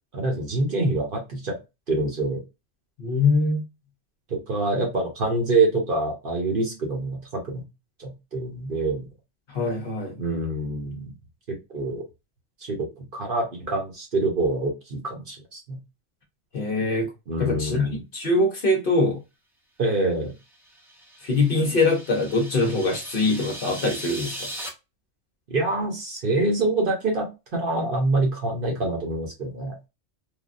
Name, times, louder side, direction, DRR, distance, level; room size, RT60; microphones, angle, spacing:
voice 1, 0.1-1.6 1.9-2.4 4.3-7.6 8.0-9.0 10.2-11.1 11.7-12.0 12.6-15.8 17.3-18.0 19.8-20.3 25.5-29.7, right 2 dB, 50° right, 1.0 m, -26 dB
voice 2, 3.0-3.6 9.5-10.2 16.5-17.1 17.4-19.2 21.2-24.5, left 2 dB, 55° left, 0.8 m, -23 dB
sound 1, 20.5-24.7, right 1 dB, 5° right, 0.3 m, -38 dB
3.3 x 2.2 x 2.4 m
omnidirectional pair, 1.3 m